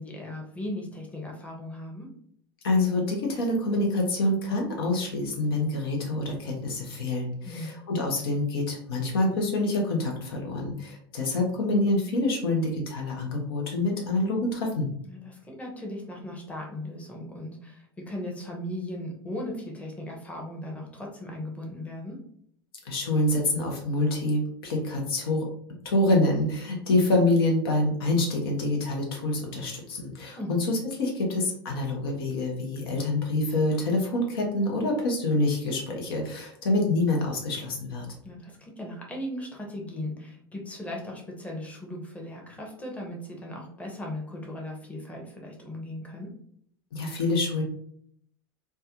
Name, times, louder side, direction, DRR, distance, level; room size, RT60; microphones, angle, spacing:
voice 1, 0.0-2.1 7.4-7.7 15.1-22.2 30.3-30.5 38.2-46.3, left 1 dB, 10° left, -1 dB, 0.9 m, -37 dB
voice 2, 2.6-14.9 22.8-25.5 25.8-38.1 46.9-47.6, left 2 dB, 65° left, 1 dB, 0.8 m, -26 dB
3.3 x 2.2 x 2.8 m, 0.65 s
figure-of-eight pair, 80°, 13 cm